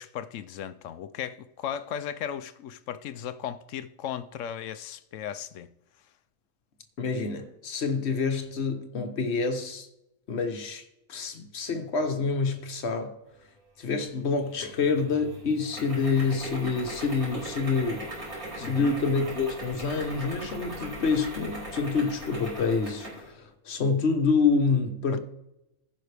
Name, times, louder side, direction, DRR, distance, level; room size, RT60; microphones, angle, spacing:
voice 1, 0.0-5.7 18.6-19.0 25.1-25.2, left 9 dB, 70° left, 0.8 m, -36 dB
voice 2, 7.0-9.9 10.3-13.2 13.8-18.1 18.6-25.2, left 4 dB, 50° left, 1.2 m, -27 dB
sound 1, 14.5-23.3, right 1 dB, 85° right, 4.4 m, -39 dB
15.0 x 5.8 x 3.4 m
omnidirectional pair, 1.5 m